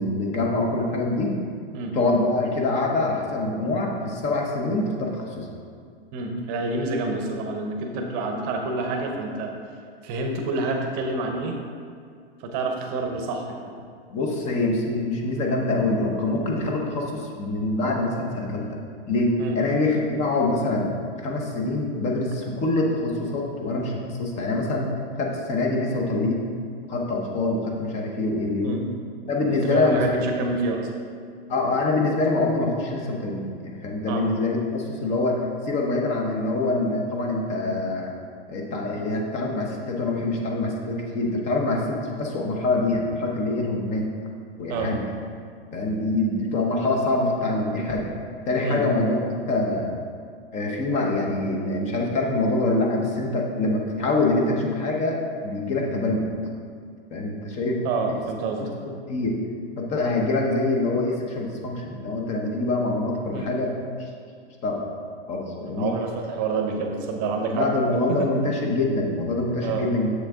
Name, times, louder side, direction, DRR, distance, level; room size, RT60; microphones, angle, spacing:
voice 1, 0.0-1.4 1.9-5.5 14.1-18.8 19.1-20.9 21.2-26.5 26.9-28.7 29.3-30.1 31.5-38.1 38.5-44.1 44.6-45.1 45.7-48.1 48.5-49.2 49.5-49.9 50.5-56.3 57.1-57.8 58.6-58.7 59.1-59.4 59.8-63.7 64.0-64.1 64.6-64.8 65.3-65.9 67.5-70.1, left 2 dB, 20° left, 0 dB, 0.9 m, -25 dB
voice 2, 6.1-9.5 10.0-11.6 12.4-13.6 19.4-19.6 28.6-28.8 29.5-30.9 34.1-34.2 38.9-39.0 44.7-44.9 48.6-48.8 57.8-58.9 63.3-63.5 65.8-67.7 69.6-69.9, right 3 dB, 30° right, 3 dB, 0.9 m, -28 dB
7.4 x 6.4 x 3.6 m, 2.2 s
hypercardioid pair, 155°, 31 cm